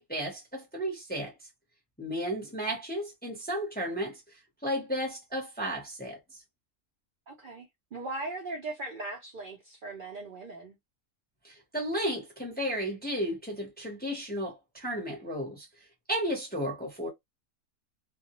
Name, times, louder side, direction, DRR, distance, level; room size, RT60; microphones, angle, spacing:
voice 1, 0.0-1.3 2.0-4.2 4.6-6.2 11.4-15.7 16.1-17.1, equal, 10° left, 0.6 m, -33 dB
voice 2, 7.3-10.8, right 2 dB, 55° right, 0.6 m, -39 dB
2.3 x 2.0 x 2.9 m
omnidirectional pair, 1.3 m